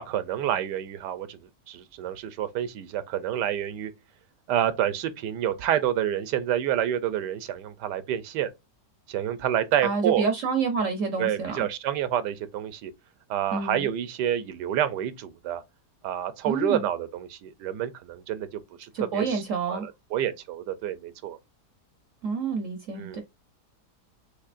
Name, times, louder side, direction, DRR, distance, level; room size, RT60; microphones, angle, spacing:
voice 1, 0.0-1.4 1.7-3.9 4.5-8.5 9.1-10.2 11.2-12.9 13.3-15.6 16.0-18.5 18.8-19.4 19.7-21.4 23.0-23.2, right 10 dB, 80° right, 1.2 m, -28 dB
voice 2, 9.8-11.7 13.5-13.9 16.4-16.8 18.9-19.9 22.2-23.2, right 5 dB, 60° right, 0.9 m, -28 dB
6.5 x 2.8 x 2.5 m
omnidirectional pair, 1.8 m